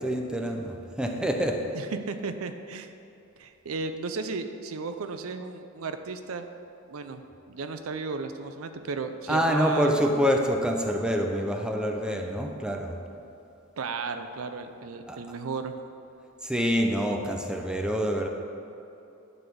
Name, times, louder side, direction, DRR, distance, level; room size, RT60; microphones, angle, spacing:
voice 1, 0.0-1.6 9.3-12.9 15.1-15.2 16.4-18.3, equal, 5° right, 2 dB, 0.6 m, -26 dB
voice 2, 1.7-2.9 3.4-6.5 6.9-9.9 13.8-15.7, right 4 dB, 85° right, 8 dB, 0.6 m, -34 dB
11.0 x 4.1 x 6.9 m, 2.8 s
head